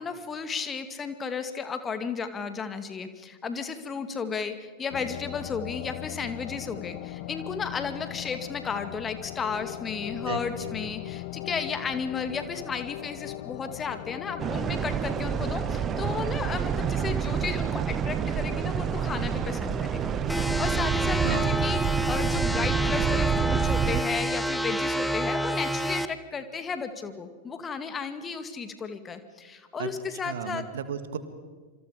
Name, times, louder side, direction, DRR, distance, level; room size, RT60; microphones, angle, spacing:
voice 1, 0.0-30.6, left 5 dB, 20° left, 9 dB, 2.1 m, -34 dB
sound 1, 4.9-23.4, left 19 dB, 50° left, 0.6 m, -40 dB
voice 2, 10.3-10.8 21.2-21.6 29.8-29.9 30.2-31.2, right 8 dB, 60° right, 11 dB, 2.1 m, -34 dB
sound 2, 14.4-24.0, right 8 dB, 25° right, 0.8 m, -28 dB
sound 3, 20.3-26.1, equal, 5° left, 1.1 m, -28 dB
27.0 x 25.5 x 5.2 m, 1.5 s
figure-of-eight pair, 90°, 0 cm